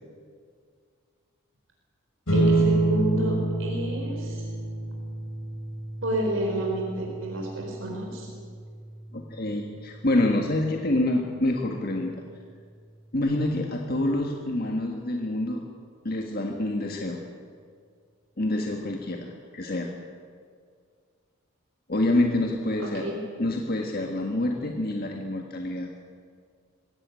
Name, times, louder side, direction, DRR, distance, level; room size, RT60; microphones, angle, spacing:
sound 1, 2.3-13.0, right 2 dB, 70° left, 4.6 m, -30 dB
voice 1, 2.3-4.5 6.0-8.3 22.8-23.2, right 1 dB, 65° right, 0 dB, 4.3 m, -30 dB
voice 2, 9.1-12.1 13.1-15.6 16.0-17.2 18.4-19.9 21.9-23.0 23.4-25.9, left 1 dB, 45° left, 2 dB, 1.6 m, -27 dB
21.5 x 17.0 x 9.3 m, 2.1 s
head